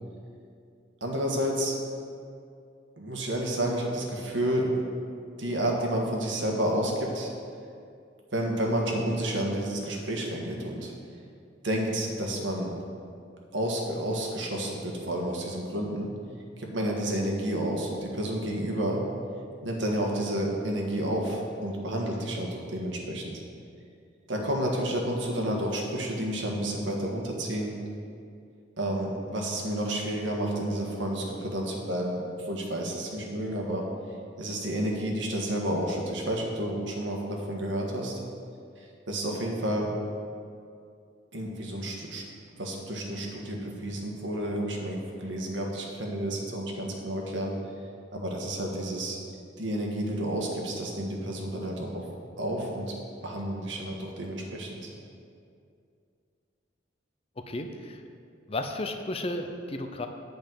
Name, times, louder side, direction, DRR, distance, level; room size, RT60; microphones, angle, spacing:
voice 1, 1.0-1.7 3.0-4.8 5.4-7.3 8.3-10.9 11.6-12.7 13.5-16.1 16.6-19.0 19.6-23.4 24.3-27.7 28.8-33.8 34.4-38.2 38.8-39.9 41.3-42.2 42.6-47.5 48.1-49.2 49.6-52.0 52.4-52.9 53.2-54.9, right 1 dB, 80° right, 0 dB, 1.6 m, -30 dB
voice 2, 57.4-58.0 58.5-60.1, left 1 dB, 30° left, 6 dB, 0.6 m, -33 dB
8.8 x 5.4 x 7.7 m, 2.4 s
head